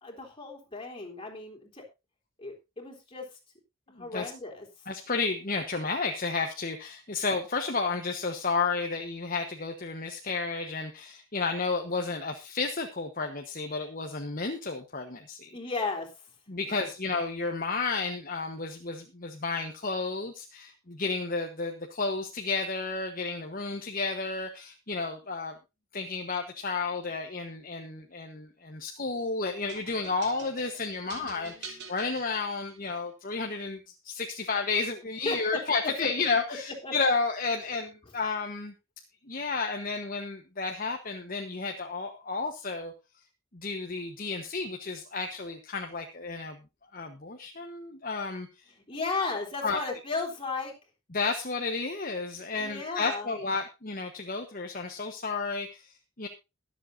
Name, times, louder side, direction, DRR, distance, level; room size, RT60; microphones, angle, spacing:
voice 1, 0.0-1.8 2.4-3.3 4.0-4.7 15.5-16.1 16.7-16.8 31.2-31.9 35.2-35.6 36.0-36.1 36.8-36.9 48.8-50.7 52.5-53.3, left 3 dB, 25° left, 0 dB, 3.6 m, -35 dB
voice 2, 4.0-4.3 4.9-15.5 16.5-25.5 25.9-38.7 39.3-42.9 43.5-46.6 46.9-48.5 49.2-49.3 49.6-49.8 51.1-56.3, left 4 dB, 40° left, 4 dB, 1.2 m, -32 dB
sound 1, 29.7-33.1, right 4 dB, 50° right, 3.0 m, -46 dB
23.0 x 7.7 x 2.7 m, 0.26 s
head